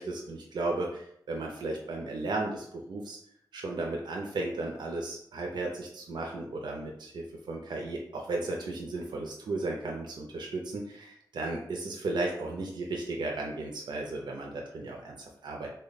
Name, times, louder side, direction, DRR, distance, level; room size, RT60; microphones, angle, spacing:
voice 1, 0.0-3.2 3.5-15.7, right 2 dB, 90° right, 0 dB, 0.5 m, -35 dB
3.3 x 2.1 x 3.9 m, 0.70 s
wide cardioid pair, 160°, 7 cm